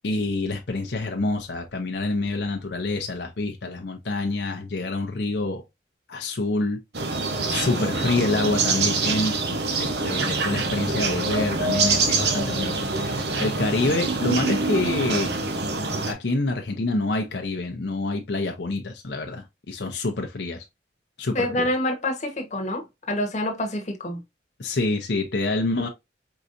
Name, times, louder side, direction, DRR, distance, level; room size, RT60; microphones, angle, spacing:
voice 1, 0.0-5.6 6.1-6.8 7.5-9.4 9.8-15.3 16.1-20.6 21.2-21.7 24.6-25.9, left 2 dB, 70° left, 0.7 m, -27 dB
sound 1, 6.9-16.1, right 3 dB, 60° right, 0.9 m, -25 dB
voice 2, 21.3-24.2, left 1 dB, 40° left, 1.1 m, -27 dB
4.6 x 4.0 x 2.6 m
head